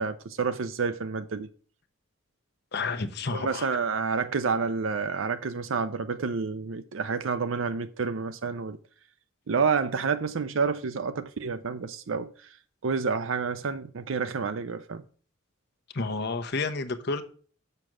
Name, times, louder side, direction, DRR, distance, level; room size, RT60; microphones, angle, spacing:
voice 1, 0.0-1.5 3.3-8.8 9.5-12.3 12.8-15.0, right 5 dB, 70° right, 0.5 m, -29 dB
voice 2, 2.7-3.7 15.9-17.2, left 3 dB, 55° left, 0.9 m, -30 dB
6.7 x 6.4 x 6.0 m
head